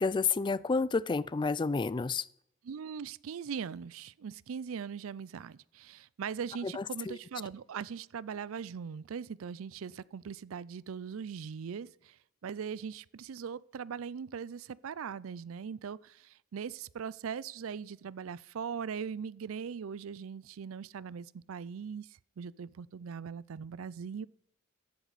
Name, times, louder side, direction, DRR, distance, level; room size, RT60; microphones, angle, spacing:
voice 1, 0.0-2.3 6.6-7.2, left 4 dB, 20° left, 0.3 m, -30 dB
voice 2, 2.6-12.2 12.4-24.3, right 6 dB, 75° right, 0.4 m, -40 dB
14.0 x 10.5 x 4.1 m
head